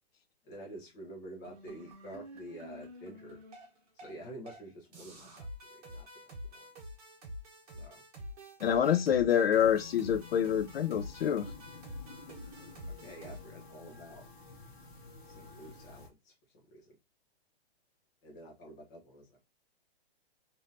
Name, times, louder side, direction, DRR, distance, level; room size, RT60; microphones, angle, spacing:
voice 1, 0.4-3.4 4.0-5.5 5.7-6.1 6.5-6.7 7.7-8.0 12.9-14.2 15.3-16.3 16.7-16.9 18.2-19.4, right 1 dB, 15° left, 0.7 m, -48 dB
sound 1, 1.4-4.2 4.5-4.6 4.9-13.4, equal, 35° right, 1.3 m, -47 dB
voice 2, 8.6-11.5, left 9 dB, 65° left, 0.5 m, -27 dB
sound 2, 9.6-16.1, left 4 dB, 50° left, 1.0 m, -51 dB
3.4 x 2.7 x 2.7 m
hypercardioid pair, 165°, 32 cm